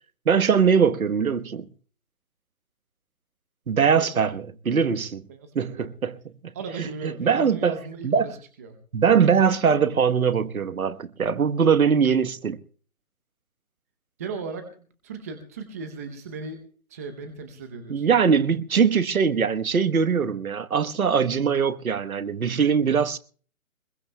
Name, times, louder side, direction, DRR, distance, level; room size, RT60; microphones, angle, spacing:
voice 1, 0.3-1.7 3.7-5.2 5.5-6.2 6.4-6.5 6.8-6.9 7.2-7.8 8.0-8.3 8.9-12.6 17.9-23.2, right 6 dB, 80° right, 1.2 m, -21 dB
voice 2, 5.3-5.9 6.5-8.8 14.2-16.6 16.9-18.1, right 4 dB, 10° right, 0.7 m, -37 dB
23.5 x 21.5 x 2.2 m
hypercardioid pair, 155°, 42 cm